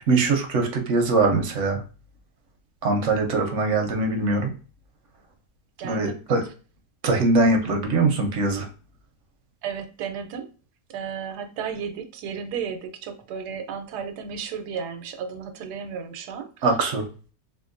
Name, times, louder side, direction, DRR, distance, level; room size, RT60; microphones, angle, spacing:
voice 1, 0.0-1.8 2.8-4.5 5.8-6.4 7.0-8.7 16.6-17.0, right 3 dB, 60° right, 0.9 m, -22 dB
voice 2, 5.8-6.2 9.6-10.5 10.9-16.7, right 7 dB, 80° right, 1.2 m, -33 dB
3.6 x 2.6 x 2.5 m
omnidirectional pair, 1.7 m